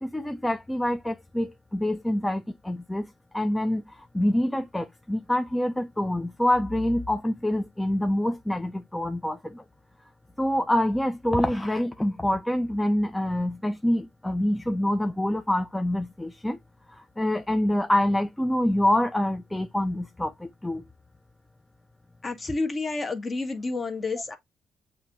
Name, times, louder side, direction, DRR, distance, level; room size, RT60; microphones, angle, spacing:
voice 1, 0.0-3.1 3.3-9.6 10.4-16.6 16.9-20.8, left 1 dB, 10° left, 0.5 m, -26 dB
voice 2, 22.2-24.4, left 3 dB, 35° left, 1.3 m, -30 dB
7.0 x 2.7 x 2.6 m
cardioid pair, 90°, 0 cm